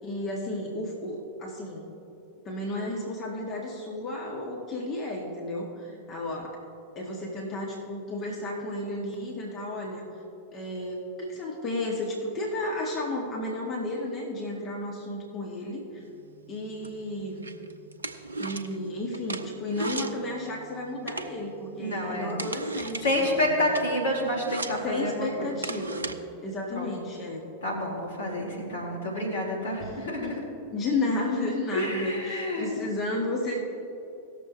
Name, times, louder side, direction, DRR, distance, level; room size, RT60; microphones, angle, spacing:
voice 1, 0.0-1.8 2.4-6.6 6.9-10.1 10.5-16.0 16.5-17.4 18.4-23.5 24.8-26.1 26.4-27.4 29.8-30.4 30.7-33.6, left 2 dB, 30° left, -2 dB, 1.6 m, -33 dB
sound 1, 16.0-26.2, right 3 dB, 75° right, 0.6 m, -39 dB
voice 2, 21.8-22.4 23.0-25.5 26.7-26.9 27.6-30.4 31.7-32.8, left 1 dB, 70° left, -3 dB, 2.5 m, -29 dB
18.5 x 7.0 x 3.2 m, 2.8 s
figure-of-eight pair, 90°, 0 cm